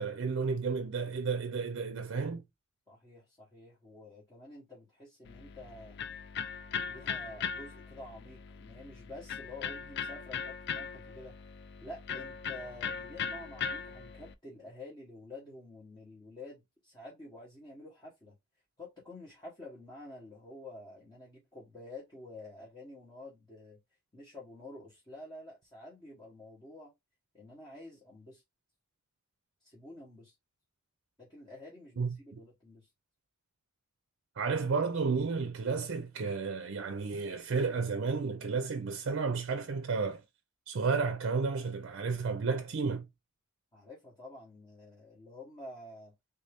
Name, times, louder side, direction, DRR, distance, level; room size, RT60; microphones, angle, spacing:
voice 1, 0.0-2.4 32.0-32.4 34.4-40.2 40.7-43.1, right 4 dB, 60° right, 0.5 m, -32 dB
voice 2, 2.9-6.1 6.9-11.3 11.8-18.4 18.8-23.8 24.1-26.9 27.3-28.4 29.6-30.3 31.2-32.9 43.7-46.1, left 2 dB, 20° left, 1.2 m, -49 dB
Electric guitar, 5.2-14.3, left 6 dB, 55° left, 0.4 m, -39 dB
3.4 x 2.7 x 3.4 m
head